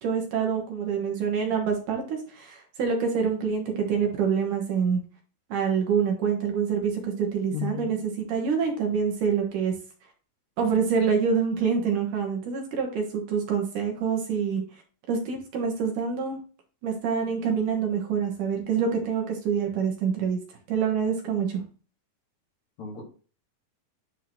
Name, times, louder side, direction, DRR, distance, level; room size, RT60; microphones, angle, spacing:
voice 1, 0.0-5.0 5.5-9.7 10.6-14.6 15.1-16.4 16.8-20.4 20.7-21.6, right 6 dB, 65° right, 1 dB, 2.7 m, -26 dB
voice 2, 7.5-8.0 22.8-23.0, left 8 dB, 55° left, -1 dB, 3.0 m, -33 dB
10.5 x 4.7 x 3.0 m, 0.38 s
omnidirectional pair, 4.3 m